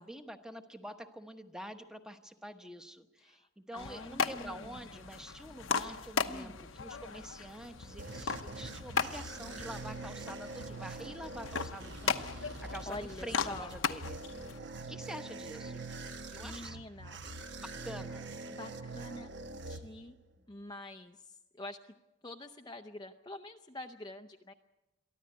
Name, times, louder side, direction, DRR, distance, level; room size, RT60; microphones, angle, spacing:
voice 1, 0.0-14.3 14.9-15.8 16.3-16.8 17.5-18.4, right 1 dB, 5° right, 7 dB, 1.0 m, -47 dB
voice 2, 3.2-5.0 6.3-6.6 12.9-13.7 16.4-17.2 18.5-20.2 20.5-21.9 22.2-24.5, left 2 dB, 20° left, 5 dB, 0.6 m, -46 dB
sound 1, 3.8-14.6, left 5 dB, 75° left, 1.0 m, -37 dB
sound 2, 7.4-20.4, right 2 dB, 55° right, 1.3 m, -44 dB
23.0 x 14.5 x 9.4 m, 1.0 s
head